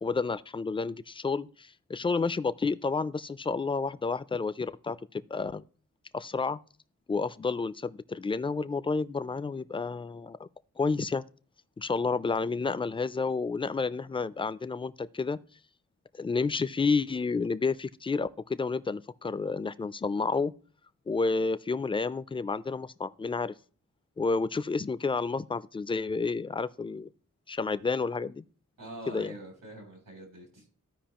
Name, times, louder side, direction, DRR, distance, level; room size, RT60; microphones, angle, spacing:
voice 1, 0.0-5.6 6.1-6.6 7.1-10.5 10.8-11.2 11.8-15.4 16.2-20.5 21.1-23.5 24.2-27.1 27.5-28.5 29.1-29.3, left 4 dB, 15° left, 0.3 m, -30 dB
voice 2, 28.8-30.7, right 1 dB, 85° right, 3.3 m, -44 dB
14.5 x 4.9 x 2.9 m
wide cardioid pair, 80°, 32 cm